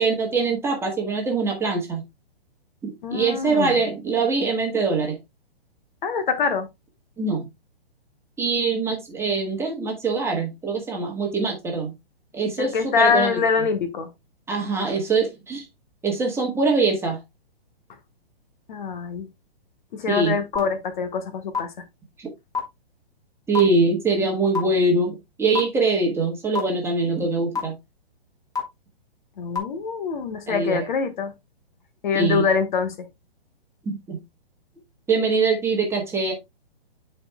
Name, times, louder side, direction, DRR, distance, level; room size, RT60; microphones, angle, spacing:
voice 1, 0.0-2.0 2.8-5.2 7.2-7.5 8.4-11.9 12.3-13.4 14.5-15.6 16.0-17.2 20.1-20.4 22.2-22.3 23.5-27.7 30.5-30.9 32.1-32.5 33.8-34.2 35.1-36.3, right 3 dB, 10° right, 1.4 m, -23 dB
voice 2, 3.0-3.8 6.0-6.7 12.6-14.1 18.7-19.3 19.9-21.7 29.4-31.3 32.0-33.1, left 5 dB, 50° left, 1.3 m, -24 dB
sound 1, 20.5-20.6 21.5-21.6 22.5-22.6 23.5-23.6 24.5-24.6 25.5-25.6 26.5-26.6 27.5-27.6 28.5-28.6 29.5-29.6, left 5 dB, 10° left, 1.8 m, -23 dB
11.0 x 4.5 x 2.2 m
hypercardioid pair, 140°, 31 cm